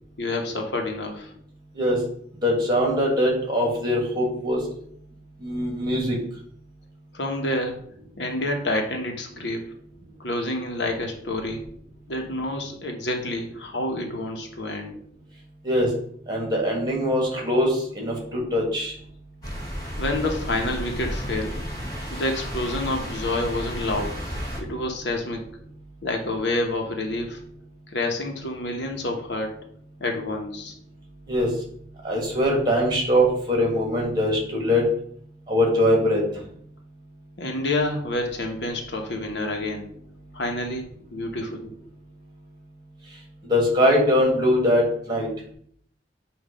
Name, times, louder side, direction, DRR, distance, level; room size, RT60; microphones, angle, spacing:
voice 1, 0.2-1.3 7.1-7.8 8.2-9.6 10.2-11.6 12.1-15.0 20.0-21.6 22.1-24.2 24.6-25.4 26.0-27.4 27.9-29.5 30.0-30.7 37.4-39.9 40.3-41.7, left 2 dB, 70° left, 3 dB, 1.1 m, -28 dB
voice 2, 2.4-4.6 5.4-6.2 15.6-15.9 16.3-18.9 31.3-31.5 32.0-34.9 35.5-36.2 43.5-45.3, equal, 25° right, 0 dB, 1.8 m, -22 dB
sound 1, 19.4-24.6, equal, 20° left, 1.3 m, -32 dB
7.5 x 2.6 x 5.1 m, 0.62 s
head